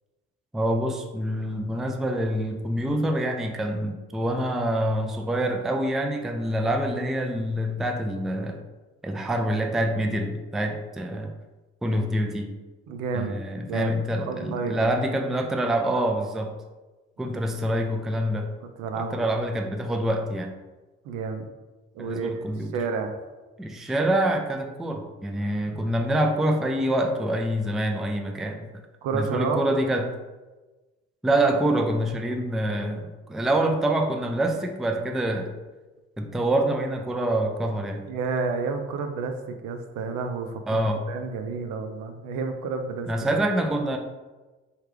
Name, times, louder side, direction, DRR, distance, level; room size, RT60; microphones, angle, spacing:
voice 1, 0.5-8.6 9.0-11.3 11.8-12.5 13.1-16.5 17.2-18.5 18.9-20.5 22.0-22.7 23.6-28.7 29.1-30.1 31.2-35.5 36.2-38.0 40.7-41.0 43.1-44.0, right 1 dB, ahead, 4 dB, 0.3 m, -26 dB
voice 2, 12.9-13.4 13.7-14.9 18.8-19.3 21.0-21.5 21.9-22.5 22.7-23.1 29.0-29.7 32.3-32.4 38.0-40.8 41.1-43.1, right 4 dB, 65° right, 6 dB, 0.5 m, -30 dB
3.3 x 2.3 x 3.1 m, 1.2 s
hypercardioid pair, 45°, 32 cm